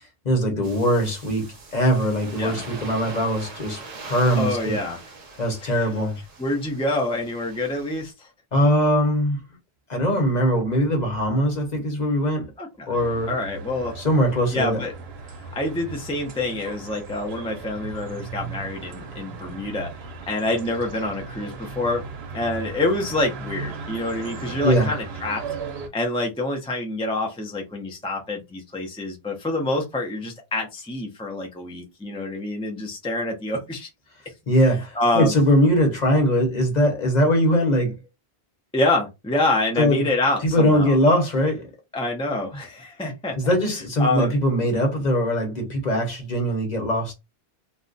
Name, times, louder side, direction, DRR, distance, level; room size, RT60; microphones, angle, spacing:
voice 1, 0.2-4.8 5.4-6.2 8.5-9.4 9.9-12.5 12.9-13.3 14.0-14.8 24.6-24.9 34.5-37.9 39.8-40.0 40.4-41.7 43.4-47.1, equal, 45° left, 0.9 m, -21 dB
sound 1, 0.6-8.1, right 3 dB, 45° right, 0.7 m, -42 dB
voice 2, 4.4-5.0 5.6-5.9 6.4-8.3 12.6-13.0 13.3-13.9 14.5-14.9 15.4-19.9 20.3-22.0 22.3-25.4 25.9-33.9 34.6-35.3 38.7-41.0 41.9-43.4 44.0-44.3, left 2 dB, 10° left, 0.4 m, -26 dB
sound 2, 13.0-25.9, right 4 dB, 75° right, 0.9 m, -37 dB
2.4 x 2.1 x 3.8 m
omnidirectional pair, 1.1 m